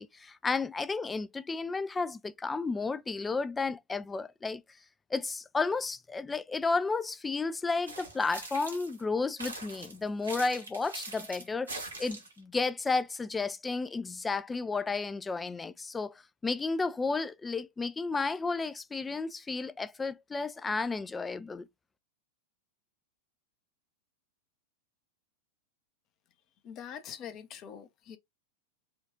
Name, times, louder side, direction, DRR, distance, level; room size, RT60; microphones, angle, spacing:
voice 1, 0.0-4.6 5.1-16.1 16.4-21.7, left 4 dB, 15° left, 0.4 m, -32 dB
sound 1, 7.9-9.0 9.4-12.4, right 3 dB, 75° right, 1.6 m, -42 dB
voice 2, 26.6-28.2, left 8 dB, 35° left, 0.8 m, -44 dB
4.4 x 2.4 x 3.5 m
figure-of-eight pair, 90°, 0 cm